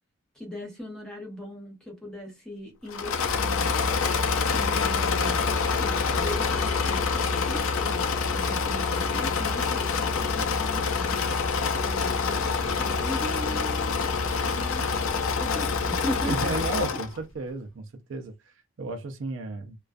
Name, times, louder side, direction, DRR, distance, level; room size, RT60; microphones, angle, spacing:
voice 1, 0.3-3.7 4.5-5.5 5.8-8.0 8.3-14.0 14.3-14.9 15.4-16.6, equal, 5° left, 0.9 m, -39 dB
Engine / Mechanisms, 2.9-17.2, left 5 dB, 75° left, 0.5 m, -26 dB
voice 2, 16.2-19.8, right 3 dB, 60° right, 0.4 m, -34 dB
2.4 x 2.3 x 2.2 m
head